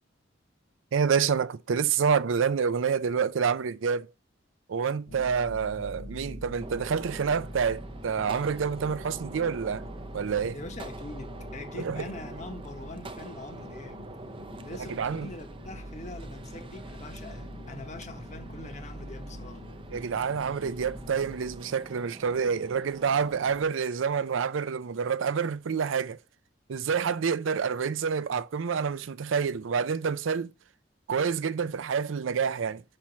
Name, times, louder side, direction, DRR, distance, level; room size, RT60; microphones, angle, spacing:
voice 1, 0.9-4.1 4.7-9.8 10.1-10.6 11.8-12.1 14.9-15.3 19.9-26.2 26.7-30.5 31.1-32.8, right 6 dB, 80° right, 0.5 m, -28 dB
sound 1, 5.1-21.6, left 1 dB, 70° left, 1.6 m, -44 dB
Gunshot gunfire, 6.6-23.6, right 3 dB, 25° right, 0.6 m, -46 dB
voice 2, 10.5-14.2 14.6-19.7, left 2 dB, 40° left, 1.1 m, -43 dB
5.8 x 4.4 x 6.1 m
head